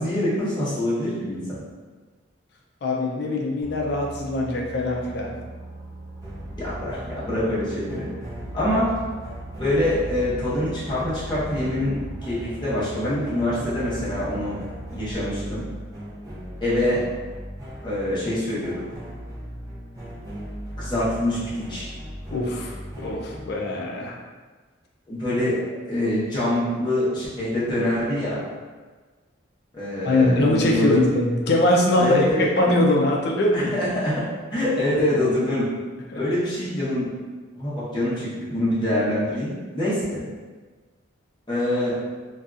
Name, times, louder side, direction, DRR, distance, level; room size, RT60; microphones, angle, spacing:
voice 1, 0.0-1.6 6.5-8.0 8.5-8.9 9.6-14.6 14.9-15.6 16.6-17.0 17.8-18.8 20.8-21.9 25.1-25.5 25.8-28.4 29.7-31.0 31.9-32.8 33.5-34.2 34.5-35.7 36.1-37.1 37.6-40.2 41.5-42.0, left 1 dB, 25° left, -10 dB, 0.9 m, -25 dB
voice 2, 2.8-5.4 22.3-24.2 30.0-33.7, left 1 dB, 55° left, 0 dB, 0.4 m, -22 dB
Boat Water vehicle, 3.6-15.1, right 2 dB, 60° right, 0.7 m, -40 dB
sound 1, 6.2-23.6, equal, 20° right, 0.6 m, -38 dB
2.7 x 2.3 x 2.4 m, 1.4 s
head